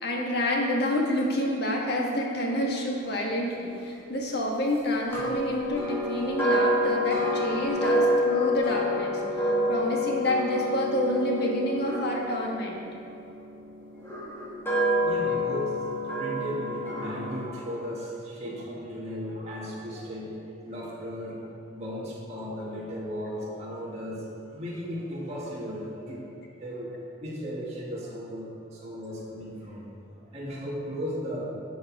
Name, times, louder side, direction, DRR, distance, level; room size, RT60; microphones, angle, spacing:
voice 1, 0.0-12.8, left 1 dB, 55° left, -1 dB, 1.6 m, -28 dB
sound 1, 5.1-13.3 14.0-17.5, equal, 10° left, 2.4 m, -28 dB
voice 2, 14.9-26.2 26.6-26.9 27.2-29.9 30.2-31.5, equal, 35° right, -5 dB, 2.1 m, -36 dB
11.5 x 6.3 x 4.8 m, 2.7 s
head